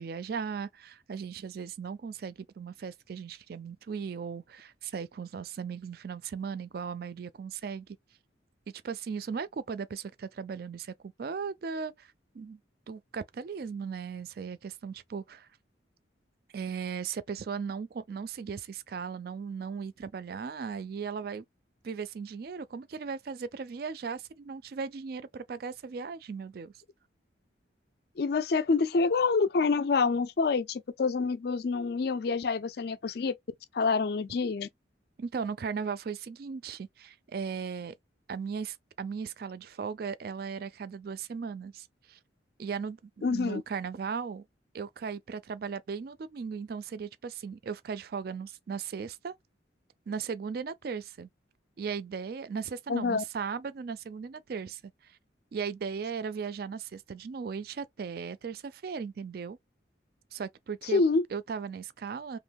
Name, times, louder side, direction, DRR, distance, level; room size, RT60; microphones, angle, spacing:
voice 1, 0.0-7.9 8.8-12.6 12.9-15.5 16.5-21.4 21.8-26.7 35.2-37.9 38.3-42.2 42.6-44.4 44.7-49.3 50.1-51.3 51.8-55.2 55.5-59.6 60.3-61.0 61.3-62.4, right 6 dB, 50° right, 0.3 m, -37 dB
voice 2, 28.2-33.4 33.7-34.7 43.2-43.6 52.9-53.2 60.9-61.2, left 4 dB, 55° left, 0.4 m, -27 dB
3.0 x 2.1 x 3.4 m
head